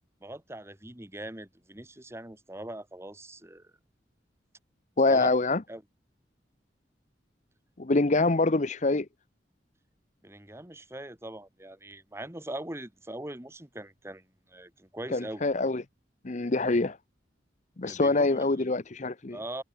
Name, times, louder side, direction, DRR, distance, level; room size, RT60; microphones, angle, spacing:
voice 1, 0.2-3.7 5.1-5.3 5.7-5.8 10.2-15.4 17.8-18.6 19.3-19.6, right 1 dB, 15° right, 1.8 m, -41 dB
voice 2, 5.0-5.6 7.8-9.1 15.1-15.8 16.2-17.0 17.8-19.4, left 3 dB, 40° left, 0.8 m, -25 dB
head